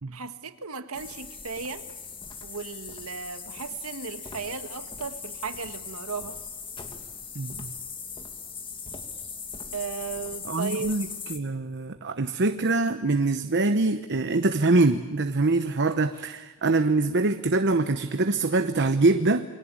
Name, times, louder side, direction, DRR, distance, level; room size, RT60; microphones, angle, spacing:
voice 1, 0.1-1.8 2.4-6.4 9.7-11.0, right 5 dB, 85° right, 9 dB, 1.6 m, -35 dB
sound 1, 0.9-11.4, left 5 dB, 25° left, 2.3 m, -39 dB
voice 2, 7.3-7.7 10.4-19.4, right 3 dB, 55° right, 9 dB, 0.9 m, -24 dB
28.5 x 23.5 x 8.8 m, 1.3 s
head